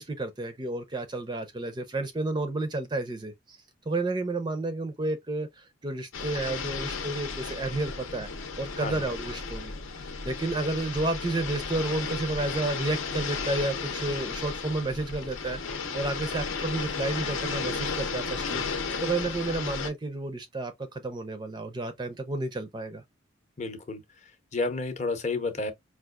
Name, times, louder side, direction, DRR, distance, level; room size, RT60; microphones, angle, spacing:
voice 1, 0.0-3.6 3.9-8.3 8.6-9.7 10.0-15.6 15.9-23.0, right 2 dB, 20° right, 0.4 m, -31 dB
sound 1, 6.1-19.9, left 5 dB, 85° left, 0.8 m, -34 dB
voice 2, 23.6-24.0 24.5-25.7, left 3 dB, 35° left, 0.6 m, -30 dB
4.6 x 2.3 x 2.2 m
head